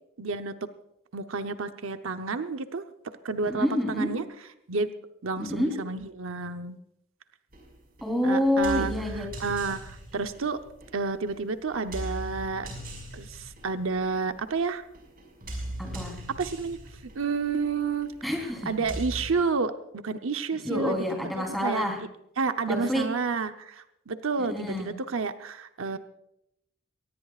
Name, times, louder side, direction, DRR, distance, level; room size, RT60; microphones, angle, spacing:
voice 1, 0.2-0.7 1.1-4.2 4.7-4.9 5.2-6.8 8.2-10.6 10.9-12.7 13.1-14.8 16.3-16.8 17.1-18.1 18.7-21.0 21.4-21.9 22.4-26.0, right 4 dB, 85° right, 8 dB, 0.8 m, -30 dB
voice 2, 3.4-4.1 5.4-5.8 8.0-9.3 15.8-16.2 18.2-18.7 20.6-22.0 22.7-23.1 24.4-24.9, left 1 dB, ahead, 1 dB, 3.8 m, -28 dB
sound 1, 7.5-19.3, right 1 dB, 45° right, 5.7 m, -40 dB
23.0 x 18.5 x 2.5 m, 0.79 s
head